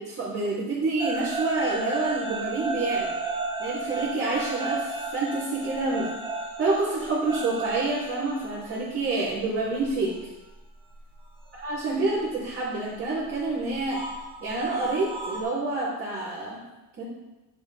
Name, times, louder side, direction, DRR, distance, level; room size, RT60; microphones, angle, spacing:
voice 1, 0.0-3.1 3.6-6.1 6.6-10.1 11.5-14.0 14.4-16.6 17.0-17.1, right 3 dB, 30° right, -12 dB, 3.1 m, -28 dB
sound 1, 1.0-10.2 10.5-11.7 12.9-15.4, right 3 dB, 10° right, 1.0 m, -34 dB
10.0 x 6.3 x 3.4 m, 1.1 s
cardioid pair, 150°, 42 cm